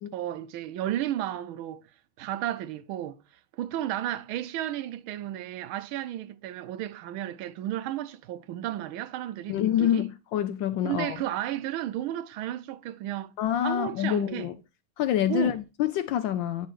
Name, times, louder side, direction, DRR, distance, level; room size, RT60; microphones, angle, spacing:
voice 1, 0.1-1.8 2.2-3.2 3.5-10.1 10.8-13.3 13.6-14.5 15.3-15.6, right 12 dB, 75° right, 1.3 m, -33 dB
voice 2, 9.5-11.2 13.4-14.5 15.0-16.7, left 11 dB, 75° left, 1.1 m, -27 dB
9.8 x 5.5 x 3.0 m
omnidirectional pair, 2.4 m